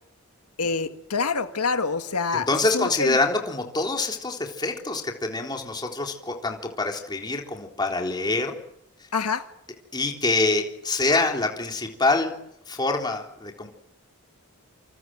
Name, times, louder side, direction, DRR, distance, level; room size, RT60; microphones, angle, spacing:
voice 1, 0.6-2.5 2.7-3.2 9.1-9.5, left 4 dB, 90° left, 8 dB, 1.7 m, -26 dB
voice 2, 2.3-8.6 9.9-12.3 12.7-13.7, left 3 dB, 20° left, 2 dB, 3.7 m, -25 dB
27.5 x 27.0 x 7.7 m, 0.79 s
head